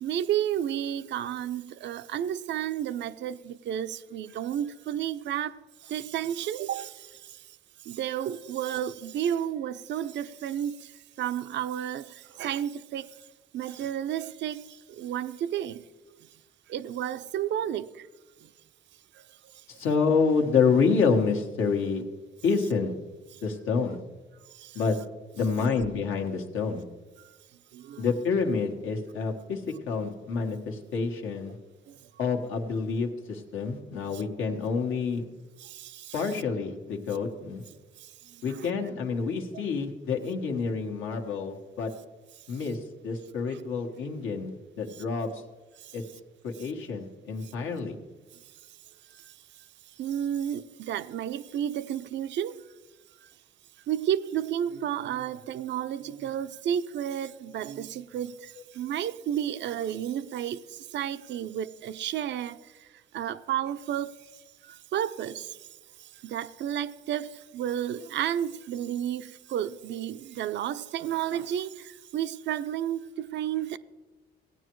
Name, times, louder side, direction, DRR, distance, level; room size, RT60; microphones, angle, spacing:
voice 1, 0.0-13.3 13.5-15.9 16.2-16.3 16.7-18.1 18.4-18.5 19.1-19.6 23.3-23.4 24.5-24.8 25.6-25.7 27.2-27.4 27.7-28.0 31.9-32.1 34.1-34.2 35.6-36.3 38.0-38.7 43.5-43.6 44.9-45.0 45.8-46.0 46.6-46.7 47.4-47.5 48.3-48.5 49.0-49.7 49.9-52.6 53.2-53.3 53.9-65.7 66.0-73.8, right 10 dB, 65° right, 0.5 m, -32 dB
voice 2, 19.7-22.0 22.4-22.9 23.4-24.0 24.7-25.0 25.4-26.8 28.0-31.6 32.2-35.2 36.1-37.6 38.4-41.9 42.5-45.4 45.9-46.0 46.4-47.9, left 5 dB, 85° left, 1.4 m, -28 dB
16.5 x 9.4 x 3.1 m
cardioid pair, 90°, 20 cm